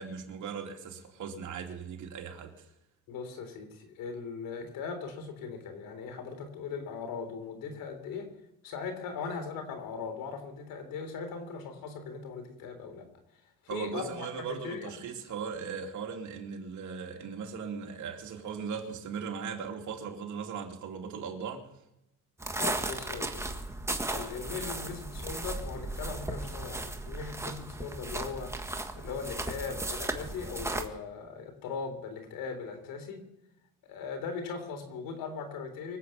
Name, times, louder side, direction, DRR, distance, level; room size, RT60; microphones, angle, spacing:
voice 1, 0.0-2.7 13.7-21.6, right 6 dB, 60° right, 2.9 m, -38 dB
voice 2, 3.1-8.3 8.6-13.1 13.6-14.9 22.6-23.5 24.1-28.6 28.9-33.2 33.8-36.0, left 5 dB, 75° left, 3.7 m, -39 dB
sound 1, 22.4-30.9, right 2 dB, 10° right, 1.5 m, -36 dB
24.5 x 8.3 x 5.8 m
cardioid pair, 105°, 34 cm